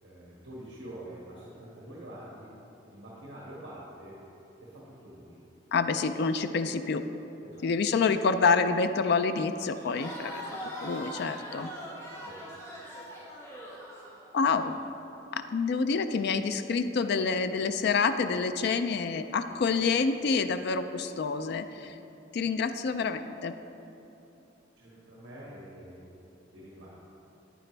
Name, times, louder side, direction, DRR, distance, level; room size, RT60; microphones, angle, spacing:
voice 1, 0.0-2.5 2.9-4.2 4.6-5.4 7.4-7.7 12.0-12.4 24.8-26.1 26.5-26.9, right 1 dB, 70° right, -6 dB, 1.7 m, -46 dB
voice 2, 5.7-7.0 7.6-10.4 10.8-11.7 14.3-14.7 15.3-22.0 22.3-23.6, left 4 dB, 55° left, 9 dB, 0.4 m, -27 dB
Crowd, 9.7-14.7, equal, 15° left, 1.5 m, -42 dB
10.5 x 9.9 x 3.3 m, 3.0 s
head